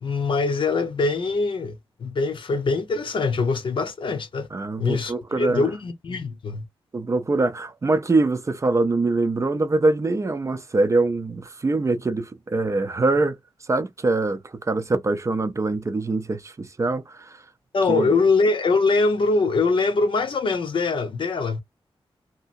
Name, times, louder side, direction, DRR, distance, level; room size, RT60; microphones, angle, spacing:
voice 1, 0.0-4.5 4.8-6.7 17.7-21.6, left 3 dB, 60° left, 0.8 m, -23 dB
voice 2, 4.5-5.7 6.9-13.4 13.6-17.4 17.9-18.2, right 2 dB, 30° right, 0.5 m, -23 dB
2.9 x 2.5 x 2.5 m
wide cardioid pair, 100°, 10 cm